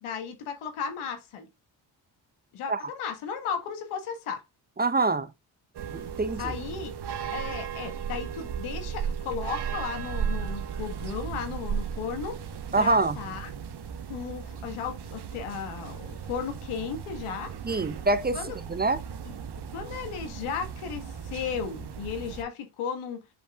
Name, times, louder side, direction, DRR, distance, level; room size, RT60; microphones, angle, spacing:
voice 1, 0.0-1.5 2.5-4.4 6.4-7.0 7.3-12.4 12.8-13.5 14.1-17.5 18.3-18.6 19.2-19.4 19.7-23.2, left 6 dB, 85° left, 1.6 m, -35 dB
voice 2, 4.8-5.3 5.9-6.4 12.7-13.1 17.7-18.4 18.7-19.0, right 3 dB, 20° right, 0.6 m, -24 dB
sound 1, 5.7-22.4, right 7 dB, 50° right, 1.1 m, -36 dB
7.6 x 5.4 x 2.3 m
supercardioid pair, 65°, 50 cm